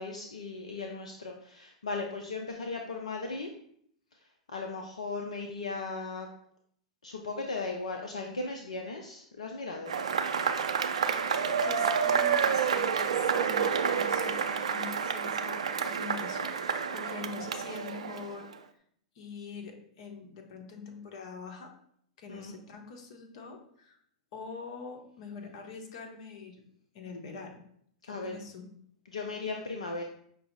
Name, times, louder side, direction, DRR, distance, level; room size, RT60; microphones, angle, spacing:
voice 1, 0.0-3.5 4.5-6.3 7.0-9.9 22.3-22.5 28.1-28.4 29.1-30.0, left 3 dB, 80° left, 2 dB, 0.4 m, -37 dB
Cheering / Applause / Crowd, 9.9-18.5, right 6 dB, 75° right, 0.4 m, -29 dB
voice 2, 11.6-18.5 19.1-21.7 22.2-24.0 24.3-26.6 26.9-27.6 28.0-28.7, left 5 dB, 60° left, 3 dB, 0.9 m, -44 dB
5.5 x 2.0 x 4.0 m, 0.66 s
hypercardioid pair, 100°, 4 cm